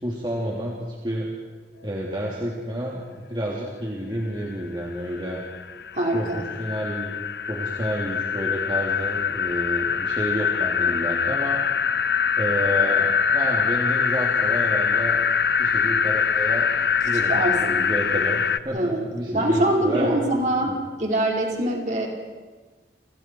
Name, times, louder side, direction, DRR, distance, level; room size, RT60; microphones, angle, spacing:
voice 1, 0.0-1.3 1.8-3.0 3.3-5.4 6.1-11.6 12.4-15.2 15.6-16.7 17.0-20.2, equal, 25° right, -4 dB, 3.1 m, -30 dB
sound 1, 4.4-4.5 4.8-18.6, left 6 dB, 65° left, 0.7 m, -23 dB
voice 2, 5.9-6.4 17.3-17.9 18.7-22.1, right 1 dB, 45° right, -1 dB, 4.8 m, -24 dB
30.0 x 27.0 x 4.7 m, 1.3 s
head